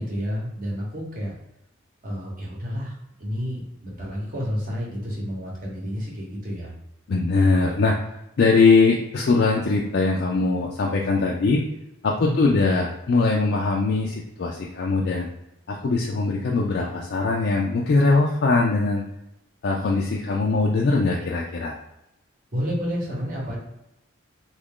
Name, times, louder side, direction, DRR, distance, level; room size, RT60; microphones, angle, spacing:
voice 1, 0.0-1.3 2.0-6.7 12.2-12.5 22.5-23.6, equal, 40° right, -3 dB, 0.9 m, -30 dB
voice 2, 7.1-7.9 8.4-11.6 12.0-15.3 15.7-19.0 19.6-21.8, left 3 dB, 50° left, -2 dB, 0.3 m, -21 dB
3.0 x 2.4 x 3.6 m, 0.86 s
head